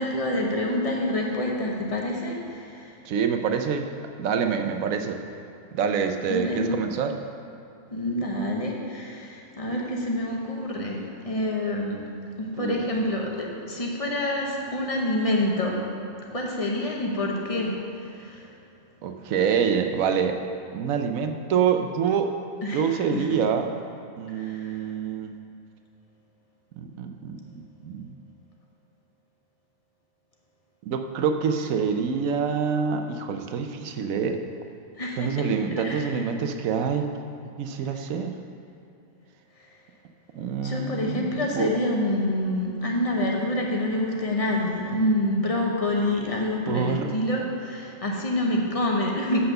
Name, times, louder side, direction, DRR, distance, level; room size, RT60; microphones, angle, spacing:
voice 1, 0.0-3.0 6.3-6.7 7.9-12.0 12.4-15.8 16.3-18.5 22.6-23.3 24.3-24.8 35.0-35.4 35.7-36.1 40.6-49.5, left 1 dB, 30° left, -1 dB, 1.0 m, -27 dB
voice 2, 3.0-3.9 4.2-5.2 5.7-7.1 12.6-12.8 19.0-20.4 20.7-22.3 22.7-23.7 24.2-25.3 26.8-28.1 30.8-34.4 35.2-37.1 37.6-38.4 40.4-41.7 46.7-47.1, right 6 dB, 85° right, 6 dB, 1.1 m, -26 dB
7.9 x 5.7 x 6.5 m, 2.6 s
omnidirectional pair, 1.4 m